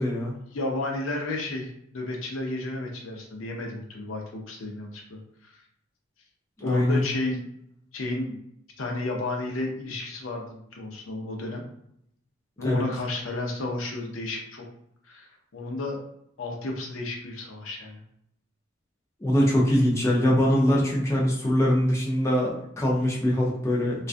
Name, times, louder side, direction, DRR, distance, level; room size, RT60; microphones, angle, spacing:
voice 1, 0.0-0.3 6.6-7.0 12.6-12.8 19.2-24.1, equal, 15° left, -4 dB, 0.5 m, -23 dB
voice 2, 0.5-5.5 6.6-7.4 7.9-8.4 8.8-11.6 12.6-14.7 15.0-16.0 16.4-18.0, left 2 dB, 70° left, 1 dB, 0.6 m, -32 dB
2.4 x 2.2 x 2.5 m, 0.75 s
head